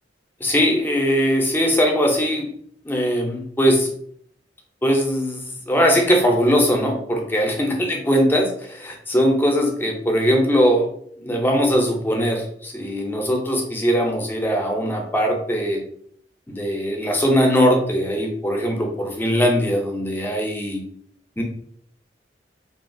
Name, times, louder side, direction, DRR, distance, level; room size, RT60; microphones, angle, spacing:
voice 1, 0.4-2.5 2.8-3.9 4.8-10.9 11.2-15.8 16.5-20.8 21.4-21.5, equal, 10° left, 2 dB, 0.4 m, -20 dB
2.8 x 2.3 x 2.5 m, 0.64 s
head